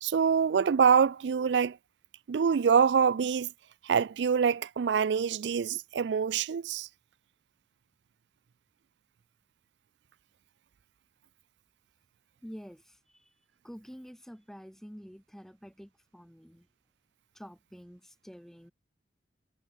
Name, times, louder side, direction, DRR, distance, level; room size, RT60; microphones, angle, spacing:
voice 1, 0.0-1.8 2.3-3.5 3.8-6.9, right 6 dB, 70° right, 0.4 m, -25 dB
voice 2, 12.4-13.3 13.6-16.7 17.3-18.7, equal, ahead, 2.0 m, -48 dB
head